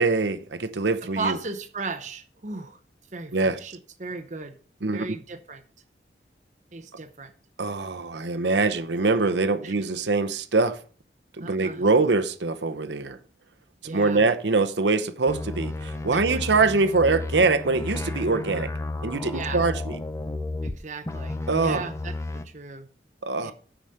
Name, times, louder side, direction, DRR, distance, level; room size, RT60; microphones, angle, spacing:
voice 1, 0.0-1.4 3.3-3.6 4.8-5.1 7.6-10.8 11.4-13.2 13.8-18.7 19.0-20.0 21.5-21.8 23.2-23.5, right 3 dB, 85° right, 0.9 m, -23 dB
voice 2, 1.0-2.8 3.1-4.5 4.9-5.6 6.7-7.3 9.6-9.9 11.4-11.8 13.8-14.3 16.1-16.4 19.3-19.6 20.6-22.9 23.4-23.5, right 3 dB, 40° right, 0.7 m, -36 dB
sound 1, 15.3-20.8 21.0-22.4, left 2 dB, 15° left, 0.6 m, -32 dB
9.2 x 5.0 x 6.6 m
head